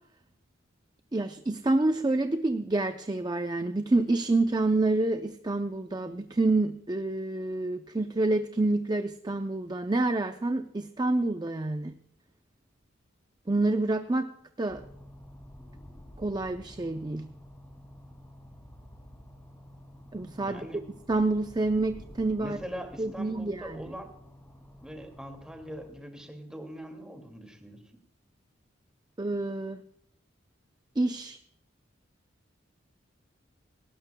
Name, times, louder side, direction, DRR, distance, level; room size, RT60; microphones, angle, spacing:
voice 1, 1.1-12.0 13.5-14.3 14.6-14.8 16.2-17.3 20.1-20.6 21.1-22.6 23.0-23.8 29.2-29.8 31.0-31.4, right 2 dB, 20° right, 8 dB, 0.5 m, -28 dB
sound 1, 14.7-25.9, equal, 10° left, 2.4 m, -50 dB
voice 2, 20.4-20.8 22.4-24.1 24.8-27.8, equal, 5° right, 4 dB, 2.2 m, -42 dB
18.5 x 17.5 x 2.2 m, 0.74 s
head